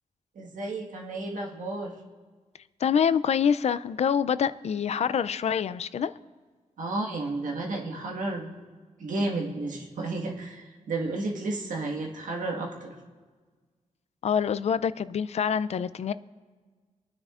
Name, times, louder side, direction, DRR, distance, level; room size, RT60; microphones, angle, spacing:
voice 1, 0.3-1.9 6.8-8.5 9.0-12.9, right 2 dB, 85° right, 0 dB, 1.6 m, -32 dB
voice 2, 2.8-6.1 14.2-16.1, left 7 dB, 55° left, 15 dB, 0.4 m, -26 dB
26.0 x 9.6 x 2.5 m, 1.5 s
wide cardioid pair, 110°, 13 cm